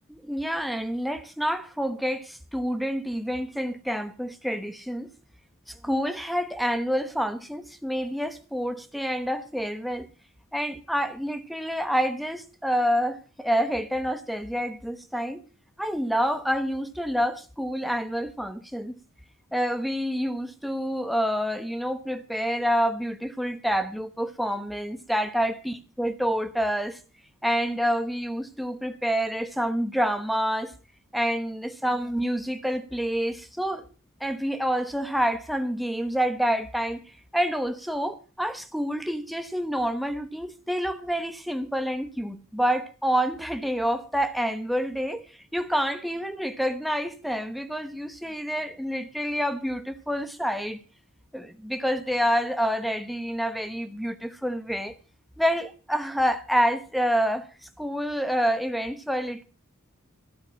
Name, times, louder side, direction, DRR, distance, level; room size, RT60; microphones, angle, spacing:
voice 1, 0.1-5.1 5.7-10.1 10.5-15.4 15.8-19.0 19.5-27.0 27.4-30.7 31.1-33.9 34.2-37.0 37.3-45.2 45.5-50.8 51.3-54.9 55.4-59.4, equal, ahead, 1.1 m, -28 dB
13.0 x 12.0 x 5.7 m
head